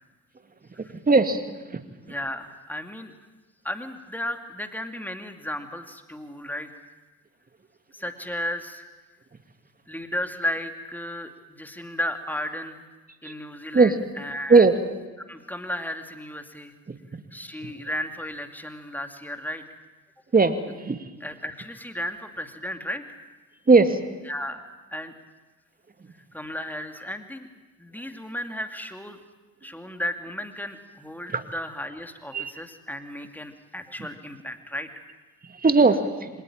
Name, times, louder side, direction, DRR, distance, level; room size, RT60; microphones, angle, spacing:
voice 1, 1.1-1.4 13.7-13.9 14.5-14.7 20.3-20.6 20.8-21.0 23.7-24.0 31.3-31.4 32.3-32.5 35.6-36.3, right 3 dB, 20° right, 8 dB, 2.2 m, -17 dB
voice 2, 2.1-3.1 3.6-6.7 7.9-8.8 9.9-12.8 13.2-14.7 15.3-16.8 17.3-19.6 21.2-23.2 24.2-24.6 24.9-25.1 26.3-27.5 27.8-29.2 29.6-34.9, left 1 dB, 5° left, 6 dB, 2.6 m, -34 dB
25.5 x 18.5 x 8.9 m, 1.2 s
figure-of-eight pair, 55°, 45 cm